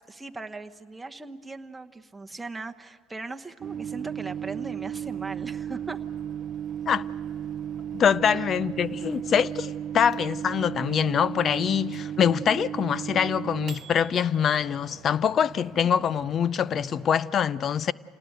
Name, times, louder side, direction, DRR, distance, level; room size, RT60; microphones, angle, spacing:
voice 1, 0.1-6.0 8.3-8.5 15.8-16.1, right 3 dB, 10° right, 1.1 m, -39 dB
Microwave oven, 3.6-17.1, right 9 dB, 45° right, 0.5 m, -35 dB
voice 2, 7.9-17.9, left 8 dB, 45° left, 0.5 m, -24 dB
27.5 x 19.0 x 8.1 m
supercardioid pair, 90°, 0 cm